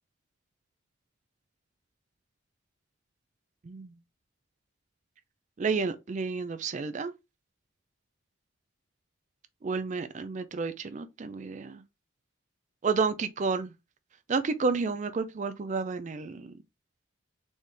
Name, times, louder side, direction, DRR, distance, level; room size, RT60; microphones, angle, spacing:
voice 1, 5.6-7.1 9.6-11.8 12.8-13.7 14.3-16.5, right 4 dB, 35° right, 0.4 m, -30 dB
4.1 x 3.2 x 3.3 m
head